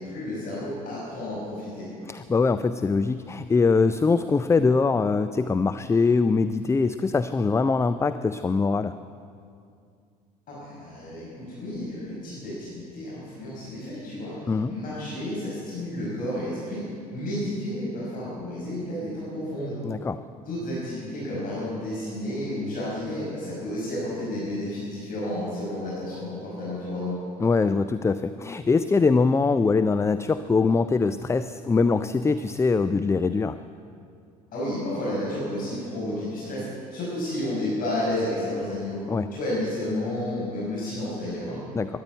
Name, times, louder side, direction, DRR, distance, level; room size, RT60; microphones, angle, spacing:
voice 1, 0.0-1.9 10.5-16.8 17.1-19.8 20.5-27.2 34.5-36.7 36.9-39.0 39.3-41.6, left 1 dB, 45° left, -7 dB, 5.4 m, -31 dB
voice 2, 2.1-8.9 14.5-14.7 19.8-20.2 27.4-33.6 39.1-39.3 41.7-42.0, left 4 dB, 15° left, 12 dB, 0.4 m, -23 dB
14.0 x 10.5 x 9.3 m, 2.4 s
hypercardioid pair, 65°, 20 cm